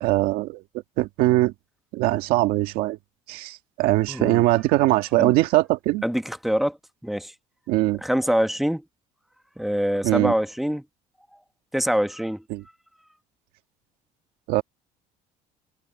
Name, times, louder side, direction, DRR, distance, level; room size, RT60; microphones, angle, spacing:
voice 1, 0.0-0.6 1.0-1.5 1.9-3.0 3.3-6.0 7.7-8.0 10.0-10.3 12.5-12.6 14.5-14.6, right 18 dB, 85° right, 1.8 m, -21 dB
voice 2, 4.1-4.4 5.2-5.3 6.0-6.8 7.0-7.3 8.0-8.8 9.6-10.8 11.7-12.4, equal, ahead, 1.3 m, -24 dB
cardioid pair, 140°, 15 cm